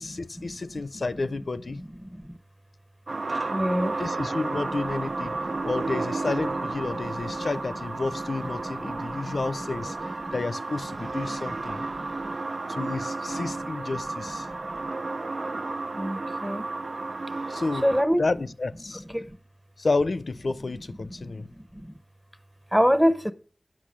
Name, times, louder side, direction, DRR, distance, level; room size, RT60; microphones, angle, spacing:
voice 1, 0.0-1.8 4.0-11.8 12.7-14.5 17.5-17.9 18.2-19.0 19.8-21.5, left 3 dB, 85° left, 0.5 m, -31 dB
voice 2, 1.8-2.4 3.5-4.0 5.5-5.7 8.8-9.5 10.2-10.4 11.7-12.4 14.4-14.8 15.9-16.7 17.8-18.2 18.9-19.4 21.3-21.9 22.7-23.3, equal, 5° right, 0.8 m, -27 dB
sound 1, 3.1-18.0, right 3 dB, 75° right, 0.3 m, -32 dB
8.5 x 5.9 x 6.1 m
wide cardioid pair, 60°, 0 cm